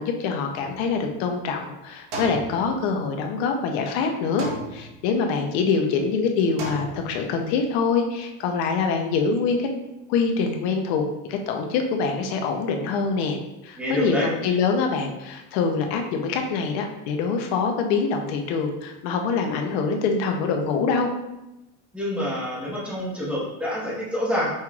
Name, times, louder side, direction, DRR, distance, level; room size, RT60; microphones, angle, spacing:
voice 1, 0.0-4.5 4.7-9.7 10.1-11.0 11.3-13.4 13.6-21.1, left 5 dB, 55° left, 4 dB, 0.6 m, -24 dB
sound 1, 0.6-1.5 2.1-3.4 4.4-5.4 6.6-7.6, right 2 dB, 70° right, 1.3 m, -36 dB
voice 2, 13.8-14.3 21.9-24.5, left 1 dB, 5° right, -6 dB, 0.8 m, -27 dB
5.6 x 3.0 x 2.3 m, 0.96 s
cardioid pair, 170°, 37 cm